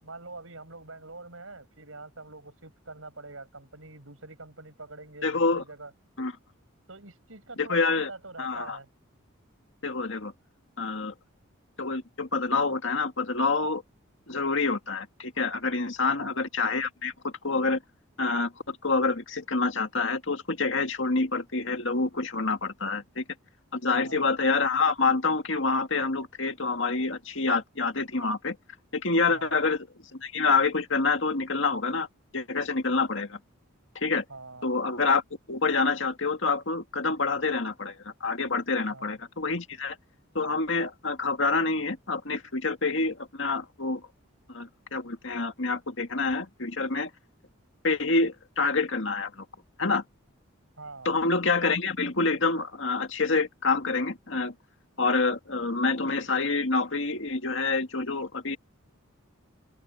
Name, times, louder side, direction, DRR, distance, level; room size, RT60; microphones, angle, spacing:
voice 1, 0.0-5.9 6.9-8.9 16.0-16.4 23.9-24.3 29.3-29.6 34.3-34.7 38.9-39.2 50.8-51.1, right 3 dB, 70° right, 7.7 m, -45 dB
voice 2, 5.2-5.6 6.2-6.3 7.6-8.1 8.4-8.8 9.8-10.3 10.8-11.1 11.8-13.8 14.3-17.8 18.2-23.2 23.7-28.6 28.9-29.9 30.2-32.1 32.3-33.4 34.0-34.2 34.6-35.2 35.5-40.0 40.3-44.0 44.5-47.1 47.8-49.5 49.8-50.0 51.1-54.5 55.0-58.6, left 3 dB, 60° left, 2.1 m, -27 dB
open air
head